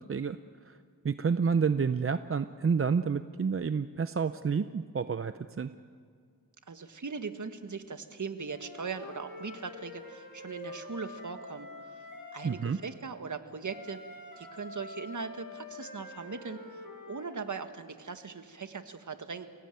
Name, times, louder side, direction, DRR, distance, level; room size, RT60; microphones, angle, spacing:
voice 1, 1.0-5.7 12.4-12.8, right 5 dB, 40° right, 11 dB, 0.6 m, -29 dB
voice 2, 6.7-12.0 12.3-14.0 14.4-19.5, right 5 dB, 55° right, 8 dB, 1.7 m, -40 dB
Wind instrument woodwind instrument, 8.5-12.6 13.6-17.5, left 3 dB, 80° left, 6.5 m, -46 dB
29.5 x 18.0 x 9.2 m, 2.2 s
wide cardioid pair, 90°, 36 cm